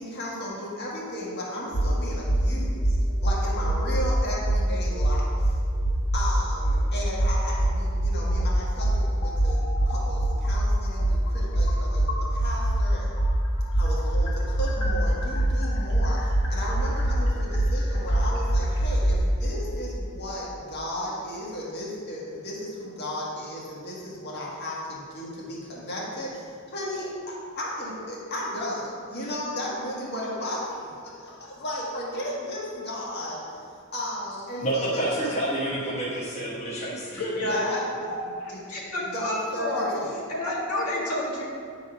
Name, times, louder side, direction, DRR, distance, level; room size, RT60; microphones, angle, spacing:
voice 1, 0.0-3.0 3.2-5.6 6.1-9.6 9.9-13.1 13.7-33.6 33.9-35.3 37.1-37.8 39.1-40.1, left 1 dB, 50° left, -5 dB, 1.6 m, -34 dB
sound 1, 1.7-1.9 2.3-2.4 2.8-4.1 4.4-4.6 5.0-6.3 6.6-6.8 7.2-8.4 8.8-12.8 13.2-19.2, right 1 dB, 65° left, 1.9 m, -23 dB
voice 2, 34.6-37.5, right 1 dB, 30° left, -6 dB, 1.4 m, -29 dB
voice 3, 37.2-37.8 38.4-39.9 40.3-41.4, left 1 dB, 85° left, -6 dB, 1.9 m, -29 dB
9.0 x 4.0 x 5.0 m, 2.2 s
head